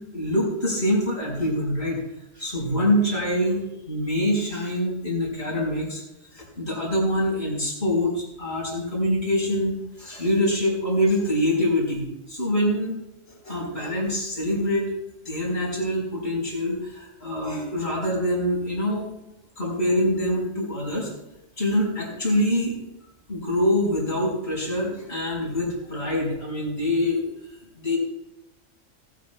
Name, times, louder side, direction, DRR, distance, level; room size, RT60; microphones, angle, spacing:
voice 1, 0.1-2.0 2.3-6.0 6.3-12.9 13.3-14.9 15.2-19.0 19.6-21.1 21.6-22.8 23.3-27.2 27.8-28.0, left 1 dB, 55° left, -2 dB, 4.7 m, -25 dB
19.0 x 12.5 x 2.2 m, 0.90 s
omnidirectional pair, 1.3 m